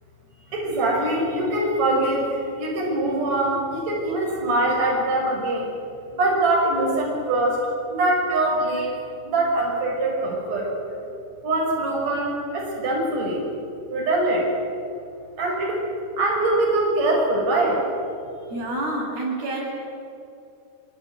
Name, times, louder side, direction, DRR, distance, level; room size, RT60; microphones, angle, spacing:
voice 1, 0.5-5.7 6.1-7.6 7.9-8.9 9.2-10.7 11.4-13.4 13.9-14.5 15.4-15.8 16.2-17.8, right 2 dB, 45° right, -3 dB, 6.7 m, -23 dB
voice 2, 18.5-19.7, right 2 dB, 75° right, -2 dB, 9.3 m, -28 dB
25.0 x 24.5 x 9.7 m, 2.6 s
omnidirectional pair, 4.6 m